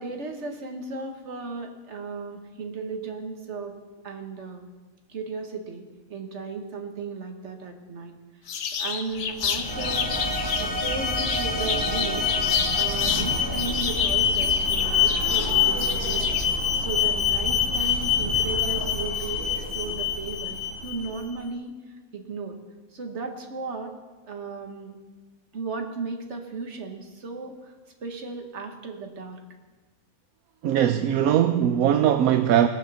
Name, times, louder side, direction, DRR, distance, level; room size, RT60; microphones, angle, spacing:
voice 1, 0.0-3.7 4.0-4.7 5.1-8.1 8.8-10.1 10.6-21.8 22.1-22.6 22.9-24.0 24.3-25.0 25.5-27.7 28.0-29.4, right 4 dB, 50° right, 1.7 m, -35 dB
sound 1, 8.5-13.3 13.6-16.5, left 7 dB, 65° left, 1.2 m, -30 dB
Alarm, 9.2-21.2, left 6 dB, 20° right, 1.7 m, -26 dB
sound 2, 9.6-14.9, right 1 dB, 5° left, 1.2 m, -34 dB
voice 2, 30.6-32.7, right 10 dB, 75° right, 1.0 m, -20 dB
19.5 x 7.2 x 6.9 m
omnidirectional pair, 1.6 m